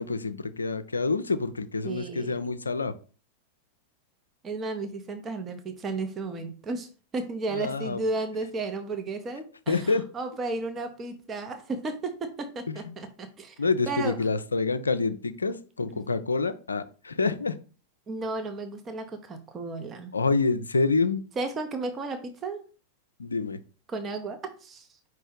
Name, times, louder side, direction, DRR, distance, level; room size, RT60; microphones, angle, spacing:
voice 1, 0.0-2.9 7.5-8.0 9.7-10.0 12.7-12.9 13.6-17.6 20.1-21.2 23.2-23.6, left 4 dB, 75° left, 13 dB, 0.3 m, -27 dB
voice 2, 1.8-2.3 4.4-13.6 13.9-14.2 15.5-15.6 15.9-16.0 18.1-20.1 21.4-22.6 23.9-24.9, right 3 dB, 25° right, 6 dB, 0.7 m, -33 dB
5.1 x 2.7 x 3.8 m, 0.37 s
figure-of-eight pair, 90°, 0 cm